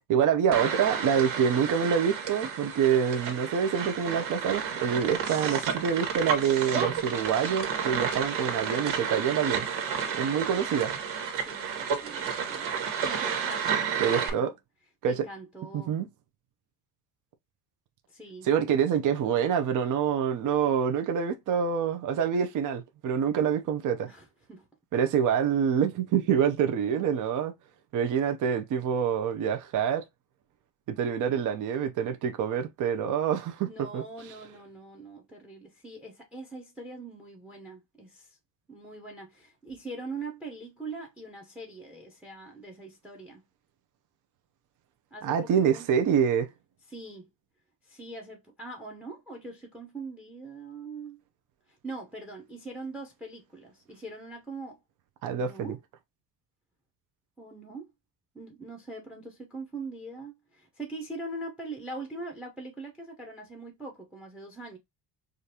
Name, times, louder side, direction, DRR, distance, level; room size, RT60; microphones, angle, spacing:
voice 1, 0.1-9.7 10.1-10.9 14.0-14.5 15.0-15.3 15.7-16.1 18.4-24.1 24.9-27.5 27.9-30.0 30.9-33.7 33.9-34.0 45.2-46.5 55.2-55.8, right 7 dB, 45° right, 0.6 m, -26 dB
sound 1, 0.5-14.3, right 6 dB, 90° right, 1.5 m, -31 dB
voice 2, 11.4-12.7 13.0-14.6 15.0-16.0 18.1-18.5 24.1-24.7 25.0-25.2 33.6-38.4 38.7-43.4 45.1-45.9 46.9-47.3 47.8-51.2 51.8-54.8 55.2-55.8 57.4-57.9 58.3-64.8, right 2 dB, 5° right, 0.7 m, -42 dB
5.0 x 2.5 x 2.7 m
cardioid pair, 155°, 43 cm